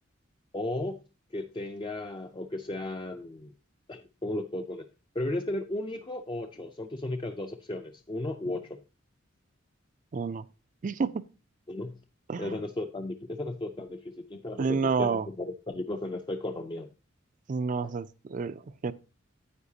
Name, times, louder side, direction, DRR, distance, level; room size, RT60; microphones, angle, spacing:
voice 1, 0.5-1.0 1.3-3.5 3.9-4.9 5.1-8.8 11.7-12.0 12.4-16.9 17.8-17.9, left 1 dB, 25° left, 0.4 m, -35 dB
voice 2, 10.1-10.4 10.8-11.2 12.3-12.6 14.6-15.3 17.5-18.9, right 5 dB, 40° right, 0.4 m, -29 dB
9.7 x 8.6 x 2.7 m
head